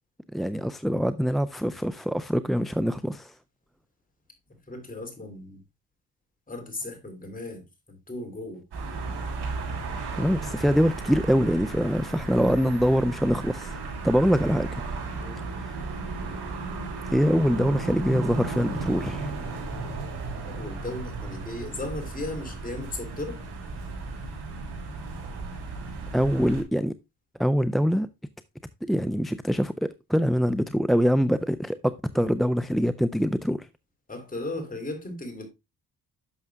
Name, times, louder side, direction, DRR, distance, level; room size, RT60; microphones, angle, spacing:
voice 1, 0.3-3.3 10.2-13.8 14.0-14.8 15.4-15.8 17.1-19.3 26.1-26.9 27.4-28.1 28.8-33.7, equal, ahead, 0.3 m, -24 dB
voice 2, 4.7-5.6 6.5-8.6 15.1-15.5 20.4-23.4 34.1-35.5, left 2 dB, 20° left, 3.3 m, -36 dB
sound 1, 8.7-26.6, right 3 dB, 75° right, 4.5 m, -34 dB
11.0 x 6.6 x 2.3 m
cardioid pair, 125°, 39 cm